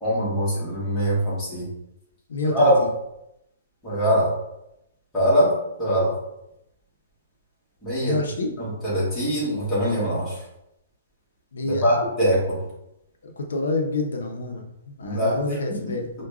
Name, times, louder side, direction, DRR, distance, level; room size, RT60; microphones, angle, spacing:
voice 1, 0.0-1.7 2.5-2.7 3.8-4.3 5.1-6.2 7.8-8.2 8.6-10.4 11.6-12.5 15.0-15.4, equal, 10° left, -9 dB, 1.1 m, -22 dB
voice 2, 2.3-2.9 8.0-8.5 11.5-12.0 13.2-16.1, left 2 dB, 80° left, 2 dB, 0.6 m, -28 dB
4.7 x 2.2 x 2.3 m, 0.85 s
hypercardioid pair, 170°, 0 cm